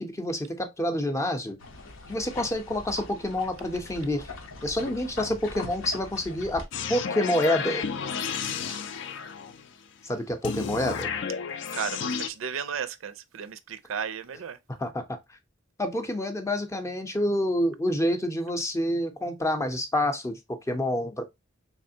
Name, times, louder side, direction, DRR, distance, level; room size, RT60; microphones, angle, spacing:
voice 1, 0.0-1.6 2.1-4.3 4.6-6.6 6.9-7.8 10.0-11.1 14.8-15.2 15.8-21.2, left 1 dB, 15° left, 0.5 m, -28 dB
sound 1, 1.6-6.7, left 3 dB, 85° left, 0.8 m, -41 dB
sound 2, 6.7-9.7 10.4-12.3, left 6 dB, 60° left, 0.4 m, -32 dB
voice 2, 8.5-8.8 11.7-14.6, right 7 dB, 85° right, 0.4 m, -35 dB
3.4 x 3.3 x 2.7 m
head